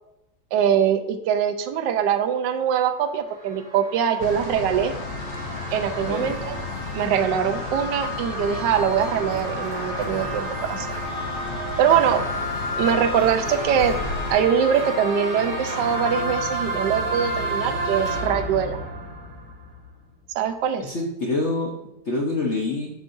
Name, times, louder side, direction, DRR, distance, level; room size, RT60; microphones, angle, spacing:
voice 1, 0.5-4.9 5.7-6.6 6.9-10.9 11.8-12.2 12.8-14.0 14.3-18.8 20.3-20.9, right 8 dB, 75° right, 8 dB, 1.3 m, -23 dB
sound 1, 3.0-20.0, right 1 dB, 40° right, 3.3 m, -31 dB
Forest Day roadhumm train, 4.2-14.3, left 4 dB, 80° left, 0.6 m, -34 dB
voice 2, 6.0-6.3 20.8-21.7 22.0-22.9, left 2 dB, 45° left, -2 dB, 1.0 m, -26 dB
8.3 x 6.1 x 2.6 m, 0.88 s
omnidirectional pair, 2.0 m